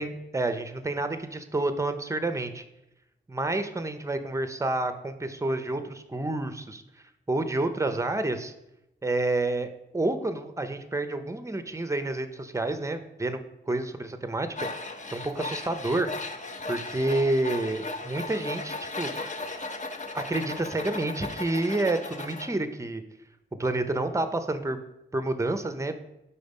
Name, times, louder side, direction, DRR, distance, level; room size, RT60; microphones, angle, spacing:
voice 1, 0.0-2.6 3.3-6.8 7.3-8.5 9.0-9.7 9.9-13.4 13.7-16.1 16.7-19.1 20.1-23.0 23.6-24.8 25.1-25.9, right 2 dB, 15° right, 9 dB, 0.5 m, -29 dB
Tools, 14.6-22.5, left 2 dB, 40° left, 0.6 m, -36 dB
5.2 x 4.3 x 5.2 m, 0.89 s
wide cardioid pair, 90°, 19 cm